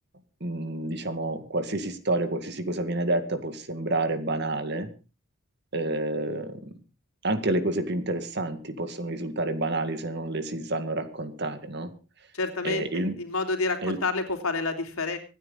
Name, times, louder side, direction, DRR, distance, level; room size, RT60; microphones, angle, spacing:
voice 1, 0.4-4.9 5.7-6.6 7.2-11.9 12.6-13.1 13.8-14.0, right 2 dB, 50° right, 9 dB, 2.1 m, -29 dB
voice 2, 12.3-15.2, left 3 dB, 80° left, 4 dB, 3.4 m, -29 dB
26.0 x 9.6 x 4.1 m, 0.33 s
head